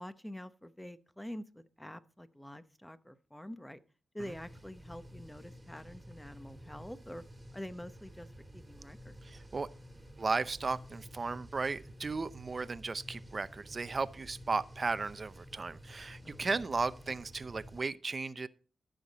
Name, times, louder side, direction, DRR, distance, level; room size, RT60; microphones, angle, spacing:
voice 1, 0.0-3.8 4.1-7.2 7.5-8.3 8.5-9.2 16.2-16.5, left 1 dB, 10° left, 0.9 m, -46 dB
sound 1, 4.2-17.8, equal, 15° right, 2.2 m, -51 dB
voice 2, 9.2-9.7 10.2-18.5, right 4 dB, 40° right, 0.6 m, -35 dB
14.0 x 6.6 x 4.1 m
cardioid pair, 70°, 0 cm